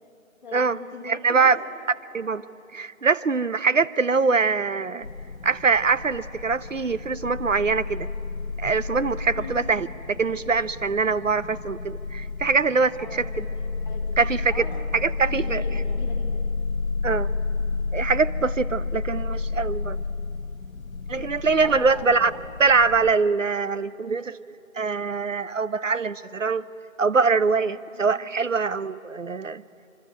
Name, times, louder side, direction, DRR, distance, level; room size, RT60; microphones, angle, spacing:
voice 1, 0.4-1.5 9.3-9.6 13.0-14.2 14.5-14.8 15.2-16.5 21.6-22.4 27.9-28.2, left 4 dB, 5° left, -12 dB, 1.3 m, -40 dB
voice 2, 1.1-1.6 2.1-2.4 2.7-5.1 5.4-8.1 8.6-13.4 14.2-14.7 14.9-15.6 17.0-17.3 17.9-20.0 21.1-22.3 22.6-26.6 27.0-29.6, right 4 dB, 65° right, 16 dB, 0.9 m, -23 dB
sound 1, 5.0-23.2, left 4 dB, 75° left, 1.1 m, -31 dB
25.5 x 24.5 x 9.1 m, 2.8 s
figure-of-eight pair, 160°, 41 cm